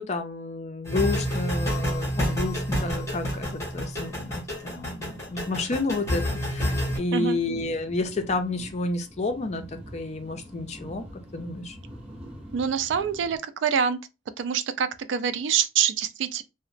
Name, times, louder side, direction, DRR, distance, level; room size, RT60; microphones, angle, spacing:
voice 1, 0.0-11.8, left 2 dB, 35° left, 0.4 m, -30 dB
sound 1, 0.8-7.0, equal, 15° left, 1.0 m, -28 dB
sound 2, 5.0-13.4, equal, 30° right, 0.8 m, -46 dB
voice 2, 12.5-14.0 14.4-16.4, right 7 dB, 75° right, 0.3 m, -25 dB
2.8 x 2.0 x 2.5 m
head